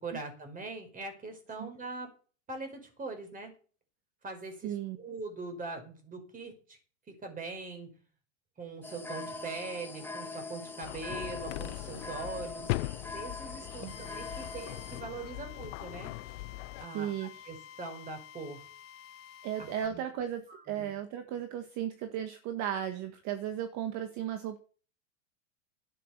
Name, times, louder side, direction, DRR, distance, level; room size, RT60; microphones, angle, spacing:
voice 1, 0.0-2.1 2.5-3.5 4.2-6.8 7.1-7.9 8.6-12.7 13.1-16.1 16.8-18.6 19.6-20.0 20.5-20.9, right 3 dB, 20° right, 5 dB, 5.5 m, -42 dB
voice 2, 4.6-5.0 13.8-13.9 16.9-17.3 19.4-24.6, right 10 dB, 45° right, 8 dB, 1.8 m, -35 dB
sound 1, 8.8-15.0, left 3 dB, 5° left, 2.0 m, -43 dB
sound 2, 10.8-16.8, left 21 dB, 65° left, 0.6 m, -39 dB
Drill, 13.9-19.9, left 10 dB, 35° left, 1.6 m, -51 dB
12.5 x 9.1 x 6.8 m, 0.40 s
hypercardioid pair, 115°, 38 cm